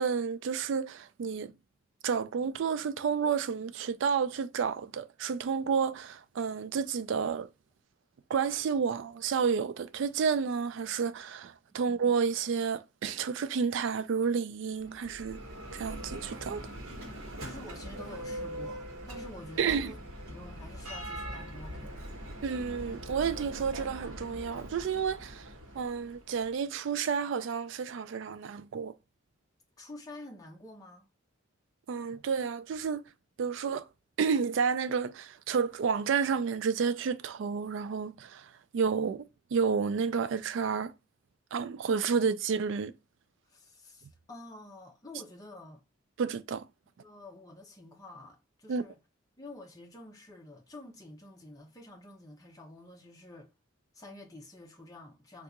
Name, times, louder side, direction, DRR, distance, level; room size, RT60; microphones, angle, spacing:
voice 1, 0.0-1.5 2.0-7.5 8.3-15.4 15.7-16.6 19.6-19.9 22.4-25.5 25.8-28.9 31.9-33.0 33.4-33.9 34.2-40.9 41.5-42.9 46.2-46.7 48.7-48.8, right 6 dB, 65° right, 0.3 m, -30 dB
Bell, 14.7-26.5, equal, 85° right, 1.1 m, -42 dB
voice 2, 17.4-20.0 20.3-22.0 29.8-31.1 42.1-42.2 43.5-45.8 47.0-49.0 49.4-53.5 53.9-55.4, left 1 dB, 15° left, 0.7 m, -49 dB
3.5 x 2.4 x 2.8 m
head